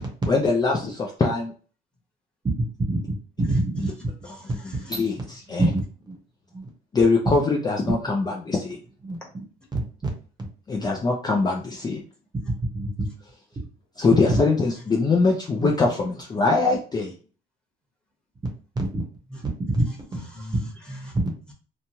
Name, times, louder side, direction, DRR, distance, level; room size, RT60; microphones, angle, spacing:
voice 1, 0.3-1.5 3.8-3.9 4.6-5.6 6.9-8.8 10.7-12.0 14.0-17.1, left 3 dB, 25° left, 0 dB, 0.4 m, -22 dB
voice 2, 2.6-3.0 3.4-3.6 4.9-5.0 5.6-6.2 6.5-6.7 7.2-7.4 9.0-9.4 9.7-9.8 12.7-13.1 13.6-13.7 14.3-14.4 15.6-15.7 18.8-19.0 19.7-19.8 20.5-20.6 21.1-21.2, right 2 dB, 25° right, 2 dB, 0.8 m, -25 dB
voice 3, 4.3-4.9 19.3-19.4 19.9-21.1, equal, 5° left, -2 dB, 1.1 m, -40 dB
2.9 x 2.2 x 2.7 m, 0.39 s
cardioid pair, 110°, 17 cm